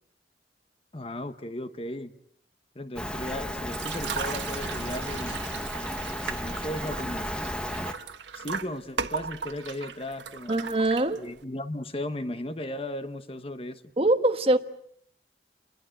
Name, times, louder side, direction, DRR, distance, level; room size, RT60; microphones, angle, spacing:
voice 1, 0.9-2.1 2.7-5.4 6.3-7.3 8.3-10.6 11.2-13.8, left 1 dB, 30° left, 11 dB, 1.2 m, -36 dB
Rain, 3.0-7.9, equal, 5° left, 1.5 m, -34 dB
sound 1, 3.7-11.4, right 6 dB, 90° right, 1.3 m, -37 dB
voice 2, 10.5-11.2 14.0-14.6, right 1 dB, 35° right, 9 dB, 1.4 m, -23 dB
29.0 x 21.5 x 7.9 m, 0.68 s
head